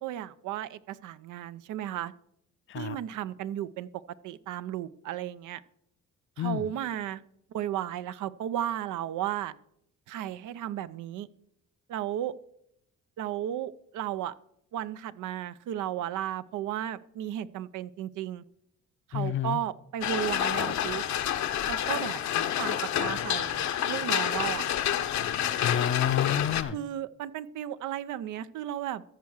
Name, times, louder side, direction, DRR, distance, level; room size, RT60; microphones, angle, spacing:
voice 1, 0.0-2.1 2.7-3.9 4.2-5.6 6.4-7.2 7.5-9.5 10.1-11.3 11.9-12.3 13.2-14.3 14.7-18.4 19.1-21.0 21.7-22.2 22.6-24.7 26.7-29.0, right 11 dB, 80° right, 14 dB, 0.6 m, -34 dB
voice 2, 19.1-19.6 25.6-26.8, left 10 dB, 45° left, 16 dB, 0.5 m, -29 dB
sound 1, 20.0-26.6, left 10 dB, 65° left, 0.9 m, -29 dB
14.0 x 4.8 x 6.3 m, 0.75 s
cardioid pair, 90°, 30 cm